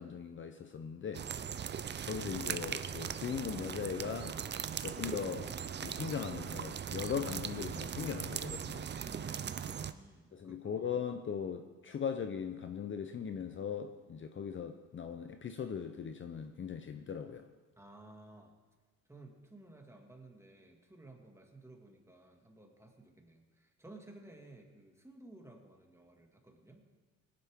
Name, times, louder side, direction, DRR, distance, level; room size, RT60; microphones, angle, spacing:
voice 1, 0.0-1.3 2.0-4.4 4.8-5.5 5.8-8.9 10.3-17.5, left 7 dB, 40° left, 7 dB, 0.7 m, -39 dB
sound 1, 1.1-9.9, right 8 dB, 35° right, 0.5 m, -39 dB
voice 2, 9.0-10.9 17.8-18.5 19.1-26.8, right 2 dB, 10° right, 1 dB, 2.1 m, -55 dB
18.5 x 10.5 x 3.7 m, 1.3 s
cardioid pair, 90°, 30 cm